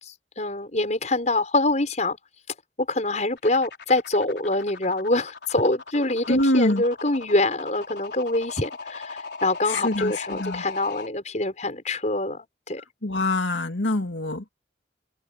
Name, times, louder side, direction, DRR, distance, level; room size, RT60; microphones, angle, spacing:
voice 1, 0.1-2.2 2.9-12.8, left 2 dB, 40° left, 5.6 m, -25 dB
sound 1, 3.4-11.1, left 4 dB, 70° left, 4.5 m, -38 dB
voice 2, 6.3-6.8 9.7-10.6 13.0-14.5, left 1 dB, 85° left, 2.2 m, -24 dB
head